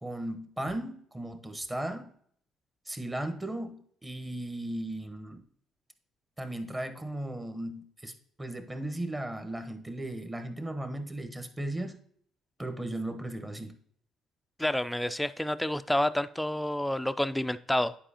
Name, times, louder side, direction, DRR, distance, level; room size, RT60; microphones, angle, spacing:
voice 1, 0.0-2.1 2.9-5.4 6.4-8.1 8.4-12.0 12.6-13.8, right 1 dB, 15° right, 1.1 m, -36 dB
voice 2, 14.6-18.0, left 1 dB, 5° left, 0.4 m, -29 dB
10.0 x 4.7 x 2.8 m
hypercardioid pair, 55°, 0 cm